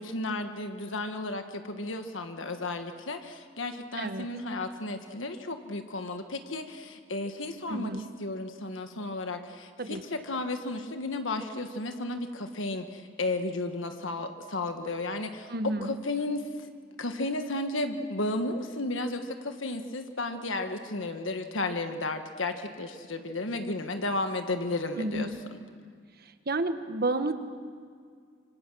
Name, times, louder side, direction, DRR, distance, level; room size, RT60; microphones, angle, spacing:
voice 1, 0.0-7.9 8.2-15.5 15.8-16.4 17.0-25.6, left 2 dB, 80° left, 7 dB, 1.4 m, -33 dB
voice 2, 4.0-4.3 7.7-8.1 9.8-10.0 15.5-15.9 25.0-25.4 26.5-27.4, right 2 dB, 50° right, 9 dB, 1.3 m, -31 dB
26.0 x 25.5 x 6.3 m, 2.1 s
head